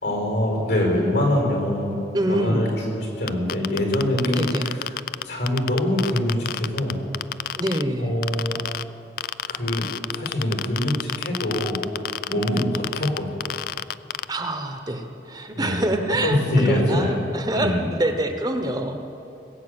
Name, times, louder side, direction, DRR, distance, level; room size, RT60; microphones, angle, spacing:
voice 1, 0.0-2.0 2.3-5.0 5.2-7.0 8.0-8.6 9.5-13.3 15.5-15.8 16.2-17.2 17.5-17.9, left 1 dB, 80° left, 0 dB, 4.9 m, -24 dB
voice 2, 2.1-2.6 4.3-4.7 7.6-8.2 12.3-12.7 14.3-19.0, right 1 dB, 20° right, 6 dB, 0.9 m, -26 dB
sound 1, 3.3-7.8 8.2-8.8 9.2-14.2, left 10 dB, 55° left, 0.3 m, -28 dB
20.0 x 8.3 x 8.1 m, 2.8 s
head